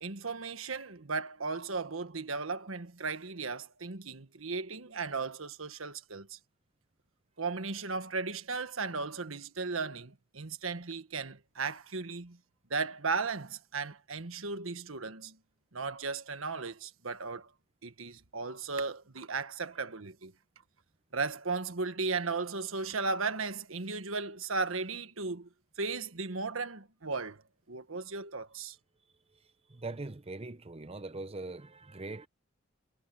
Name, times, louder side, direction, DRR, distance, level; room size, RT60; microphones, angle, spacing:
voice 1, 0.0-6.4 7.4-12.4 12.7-15.4 15.7-17.5 17.8-20.3 21.1-25.5 25.8-27.4 27.7-28.8, right 4 dB, 85° right, 1.5 m, -36 dB
voice 2, 29.7-32.3, right 2 dB, 30° right, 0.9 m, -41 dB
head